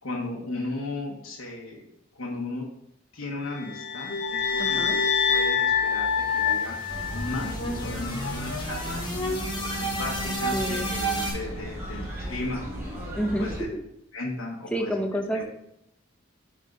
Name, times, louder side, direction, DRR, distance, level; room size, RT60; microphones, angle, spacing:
voice 1, 0.0-1.9 2.1-2.7 3.1-6.8 7.1-9.4 9.8-12.6 13.2-13.7 14.1-14.9 15.3-15.4, left 2 dB, 70° left, -3 dB, 1.1 m, -35 dB
sound 1, 3.6-7.8, left 6 dB, 50° left, 0.5 m, -26 dB
voice 2, 4.6-5.0 10.2-10.9 13.1-13.5 14.7-15.4, equal, 5° left, 3 dB, 0.7 m, -29 dB
sound 2, 4.9-11.3, right 1 dB, 20° left, 1.2 m, -32 dB
sound 3, 6.9-13.6, equal, 10° right, 2.3 m, -36 dB
9.0 x 3.7 x 3.8 m, 0.77 s
head